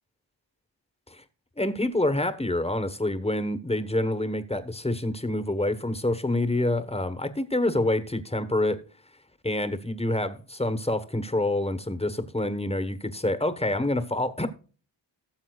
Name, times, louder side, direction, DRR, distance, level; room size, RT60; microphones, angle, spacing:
voice 1, 1.6-8.8 9.4-14.5, left 1 dB, 15° left, 1.2 m, -27 dB
18.0 x 7.2 x 2.4 m
wide cardioid pair, 60°, 46 cm